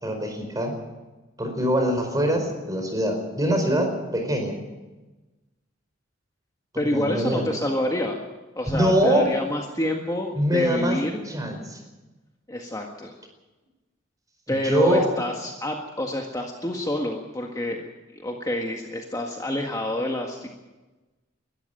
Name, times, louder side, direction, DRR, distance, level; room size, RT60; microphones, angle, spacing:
voice 1, 0.0-0.7 1.4-4.6 6.8-7.5 8.7-9.2 10.3-11.0 11.2-11.8 14.5-15.0, equal, 20° right, 4 dB, 4.8 m, -23 dB
voice 2, 6.8-8.2 8.5-11.1 12.5-13.1 14.5-17.8 18.1-20.5, left 1 dB, 15° left, 1 dB, 1.7 m, -27 dB
21.5 x 13.5 x 9.1 m, 1.1 s
head